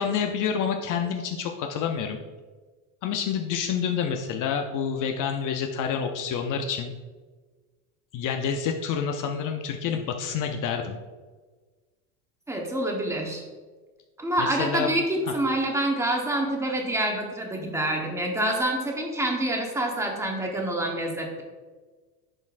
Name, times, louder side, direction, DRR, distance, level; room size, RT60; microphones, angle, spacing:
voice 1, 0.0-2.2 3.0-6.9 8.1-11.0 14.4-14.9, left 7 dB, 45° left, 4 dB, 0.6 m, -28 dB
voice 2, 12.5-13.4 14.2-21.4, right 1 dB, 5° right, 1 dB, 1.1 m, -27 dB
10.5 x 4.3 x 2.5 m, 1.3 s
supercardioid pair, 120°, 45 cm